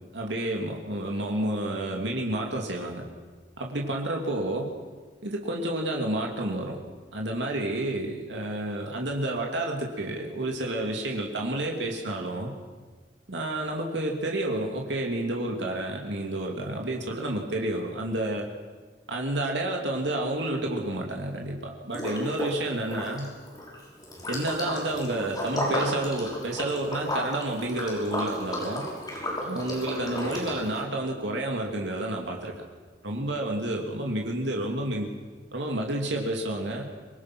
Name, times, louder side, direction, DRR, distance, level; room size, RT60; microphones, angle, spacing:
voice 1, 0.1-3.1 3.6-4.7 5.2-6.8 7.1-12.5 13.3-18.5 19.1-23.3 24.3-28.8 29.4-32.5 33.0-35.1 35.5-36.9, right 1 dB, 70° right, 0 dB, 2.6 m, -30 dB
Liquid, 21.9-22.6 22.8-30.8, left 1 dB, 20° left, 5.6 m, -33 dB
25.0 x 21.0 x 6.1 m, 1.4 s
head